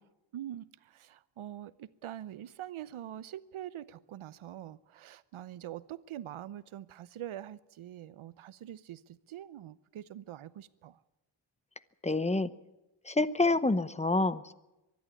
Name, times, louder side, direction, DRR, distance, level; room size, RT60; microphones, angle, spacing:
voice 1, 0.3-11.0, right 12 dB, 85° right, 0.9 m, -44 dB
voice 2, 12.0-12.5 13.0-14.5, left 2 dB, 15° left, 0.8 m, -27 dB
24.0 x 12.0 x 9.8 m
wide cardioid pair, 110°, 48 cm